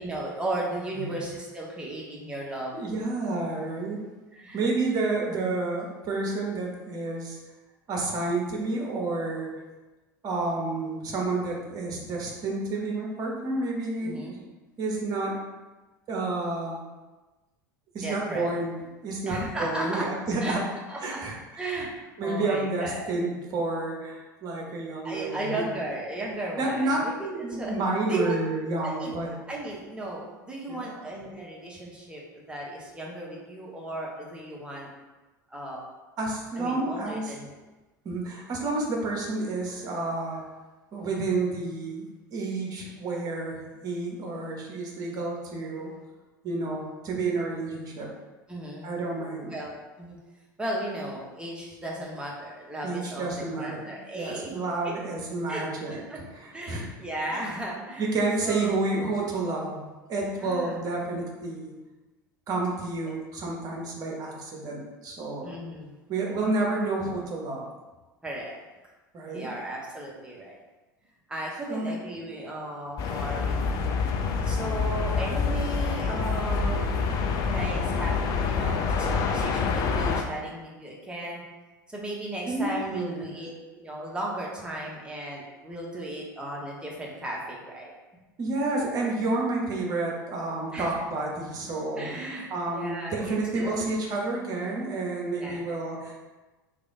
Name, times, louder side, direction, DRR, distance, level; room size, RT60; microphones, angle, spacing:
voice 1, 0.0-2.7 4.3-4.6 14.0-14.4 18.0-18.5 19.3-20.1 20.4-20.6 20.9-21.2 21.6-21.9 22.2-23.1 25.0-28.4 28.8-29.1 29.5-34.9 35.5-35.8 36.6-37.5 48.5-48.9 49.5-50.2 50.6-54.5 54.8-54.9 55.5-55.6 55.9-56.2 56.5-58.1 58.4-58.8 60.3-60.9 65.4-65.9 68.2-68.5 69.3-70.6 71.3-74.0 74.4-77.0 77.5-81.4 81.9-87.9 90.7-91.0 92.0-93.7 95.4-95.7, right 1 dB, 10° right, -3 dB, 0.8 m, -35 dB
voice 2, 0.9-1.3 2.7-4.0 4.5-7.4 7.9-9.5 10.2-14.3 14.8-15.4 16.1-16.8 17.9-18.8 19.0-20.6 21.0-21.6 22.2-25.7 26.6-27.1 27.4-29.3 30.7-31.0 36.2-37.3 38.0-40.4 40.9-42.1 42.3-45.9 46.4-48.1 48.8-49.5 52.8-56.8 57.3-57.5 58.0-61.8 62.5-65.5 66.1-67.7 69.1-69.5 71.7-71.9 82.5-83.5 88.4-96.2, right 2 dB, 35° right, -1 dB, 0.9 m, -30 dB
sound 1, 73.0-80.2, left 5 dB, 35° left, 0.4 m, -27 dB
3.3 x 2.5 x 3.6 m, 1.2 s
figure-of-eight pair, 75°, 11 cm